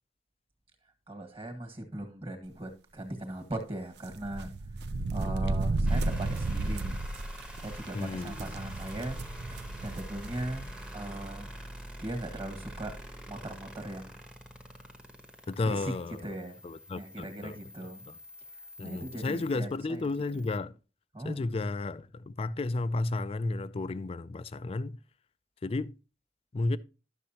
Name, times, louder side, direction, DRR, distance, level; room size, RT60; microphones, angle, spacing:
voice 1, 1.1-4.8 5.1-7.0 7.6-9.2 9.5-10.7 10.9-11.5 12.0-13.0 13.3-14.1 15.6-15.9 16.2-16.6 16.9-18.0 18.5-20.1 21.1-21.4, right 1 dB, 30° right, 1.6 m, -39 dB
sound 1, 4.0-10.8 11.1-11.2 12.3-12.4 12.7-12.9, right 2 dB, 65° right, 0.5 m, -33 dB
sound 2, 5.8-20.6, equal, 5° right, 0.9 m, -46 dB
voice 2, 7.9-8.6 15.5-16.2 16.6-17.6 18.1-18.2 18.8-20.8 21.2-25.0 25.6-25.9 26.5-26.8, left 2 dB, 30° left, 0.3 m, -33 dB
12.0 x 6.6 x 2.8 m
head